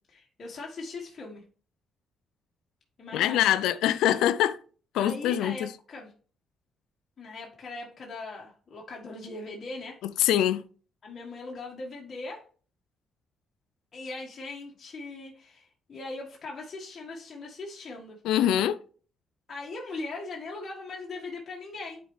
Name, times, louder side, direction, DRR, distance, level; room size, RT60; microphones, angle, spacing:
voice 1, 0.1-1.4 3.0-3.5 4.9-6.1 7.2-10.0 11.0-12.4 13.9-18.2 19.5-22.0, left 3 dB, 40° left, 1.6 m, -40 dB
voice 2, 3.1-4.6 4.9-5.7 10.2-10.6 18.2-18.8, left 11 dB, 90° left, 0.4 m, -24 dB
10.5 x 4.4 x 3.3 m
cardioid pair, 90°, 0 cm